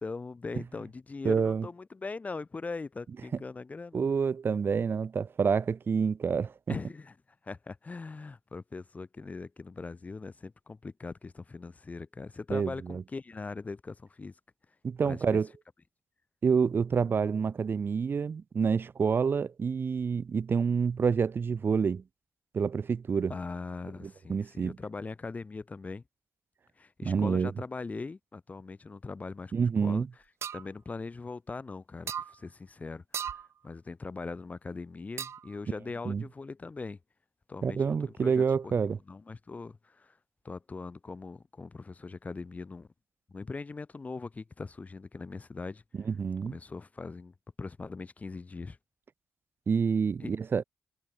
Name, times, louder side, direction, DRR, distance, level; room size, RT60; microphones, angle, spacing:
voice 1, 0.0-4.0 6.7-7.1 7.4-14.3 15.0-15.4 23.3-26.0 26.8-29.5 29.8-30.1 30.5-37.0 37.5-38.7 39.1-40.2 40.4-42.9 43.3-45.8 46.4-48.8 50.2-50.3, left 4 dB, 30° left, 1.1 m, -41 dB
voice 2, 1.2-1.7 3.9-6.8 12.5-13.0 14.8-15.5 16.4-22.0 22.5-23.3 24.3-24.8 27.0-27.5 29.5-30.1 36.0-36.2 37.6-39.0 46.0-46.6 49.7-50.6, right 6 dB, 50° right, 1.6 m, -28 dB
sound 1, 30.4-30.7 32.1-32.3 33.1-33.5 35.2-35.5, right 8 dB, 70° right, 1.5 m, -36 dB
cardioid pair, 70°, 5 cm